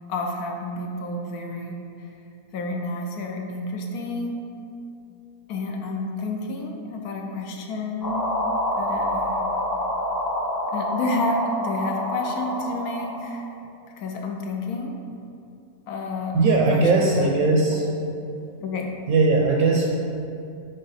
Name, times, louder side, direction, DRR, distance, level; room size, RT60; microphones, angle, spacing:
voice 1, 0.1-2.1 2.5-4.4 5.5-8.2 8.8-9.4 10.7-13.5 14.0-14.9 15.9-17.8 18.6-19.0, left 2 dB, 70° left, 2 dB, 1.0 m, -30 dB
sound 1, 8.0-13.4, left 1 dB, 25° left, 0.4 m, -27 dB
voice 2, 16.3-17.9 19.1-19.9, right 3 dB, 70° right, -1 dB, 1.0 m, -19 dB
7.9 x 3.6 x 4.1 m, 2.6 s
omnidirectional pair, 1.7 m